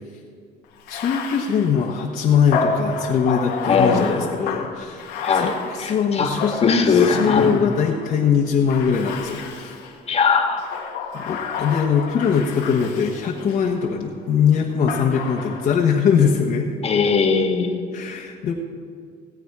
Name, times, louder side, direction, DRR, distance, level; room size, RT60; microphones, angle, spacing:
Bathtub (filling or washing), 0.8-8.1 8.7-10.0 10.5-13.7 14.9-15.8, left 5 dB, 90° left, 1.6 m, -30 dB
voice 1, 0.9-9.8 11.1-16.7 17.9-18.5, left 7 dB, 55° left, -2 dB, 1.3 m, -21 dB
voice 2, 3.6-4.3 5.2-5.5 5.8-6.3 6.6-7.5 10.1-10.6 16.8-17.7, left 5 dB, 35° left, 2 dB, 1.6 m, -19 dB
17.5 x 8.1 x 4.8 m, 2.2 s
cardioid pair, 110°, 17 cm